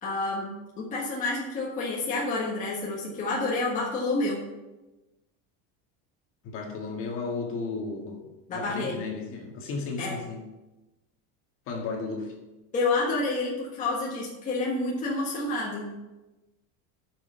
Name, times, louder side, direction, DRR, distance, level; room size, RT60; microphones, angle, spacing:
voice 1, 0.0-4.4 8.5-8.9 10.0-10.2 12.7-15.9, left 2 dB, 20° left, -5 dB, 1.5 m, -29 dB
voice 2, 6.4-10.4 11.7-12.3, left 4 dB, 35° left, 0 dB, 1.8 m, -34 dB
8.2 x 6.5 x 6.8 m, 1.1 s
cardioid pair, 175°, 36 cm